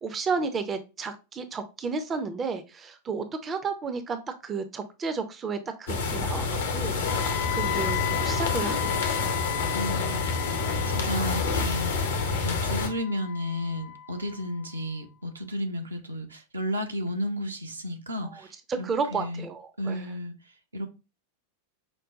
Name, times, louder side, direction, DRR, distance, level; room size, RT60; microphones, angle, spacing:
voice 1, 0.0-9.3 12.3-12.5 18.2-18.4 18.7-20.0, right 4 dB, 20° right, 0.5 m, -32 dB
sound 1, 5.9-12.9, left 4 dB, 65° left, 0.8 m, -28 dB
Wind instrument woodwind instrument, 7.1-15.0, left 11 dB, 40° left, 0.3 m, -36 dB
voice 2, 9.7-10.4 10.8-12.1 12.4-19.5 19.8-20.3 20.7-20.9, equal, 75° right, 0.8 m, -33 dB
5.2 x 2.2 x 3.7 m
figure-of-eight pair, 90°, 0 cm